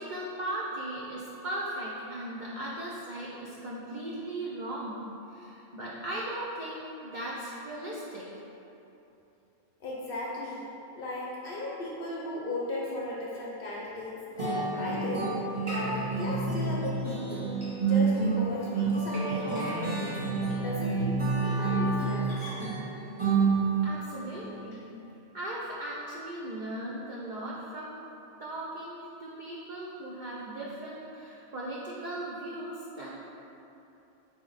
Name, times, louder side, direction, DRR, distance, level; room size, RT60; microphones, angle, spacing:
voice 1, 0.0-5.0 5.3-8.2 23.8-24.9 25.3-28.0 28.4-33.3, right 1 dB, 70° right, -6 dB, 0.4 m, -38 dB
voice 2, 9.8-10.6 10.9-15.3 15.6-17.5 17.8-20.2 20.6-21.1 21.4-22.5, left 1 dB, 60° left, -5 dB, 0.6 m, -36 dB
sound 1, 14.4-24.0, right 4 dB, 25° right, 1.1 m, -28 dB
4.3 x 2.8 x 3.9 m, 2.9 s
omnidirectional pair, 1.4 m